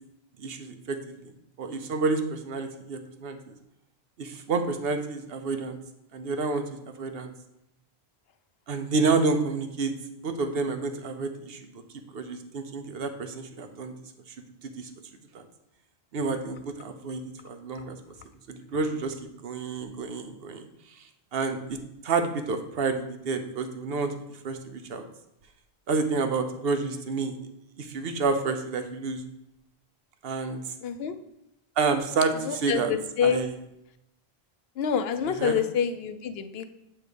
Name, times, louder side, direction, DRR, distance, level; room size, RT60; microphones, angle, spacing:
voice 1, 0.4-1.0 1.6-3.4 4.2-5.8 6.1-7.3 8.7-9.9 10.2-11.6 12.1-13.9 14.8-14.9 15.3-15.4 16.1-18.0 18.5-19.1 19.4-20.7 21.3-21.8 22.0-24.2 24.4-25.0 25.9-27.3 27.8-29.2 30.2-30.6 31.8-32.9 33.2-33.5 35.3-35.6, right 4 dB, 65° right, 7 dB, 0.9 m, -29 dB
voice 2, 30.8-31.1 32.4-33.4 34.8-36.6, left 7 dB, 70° left, 10 dB, 0.8 m, -27 dB
7.9 x 3.3 x 5.0 m, 0.85 s
omnidirectional pair, 1.1 m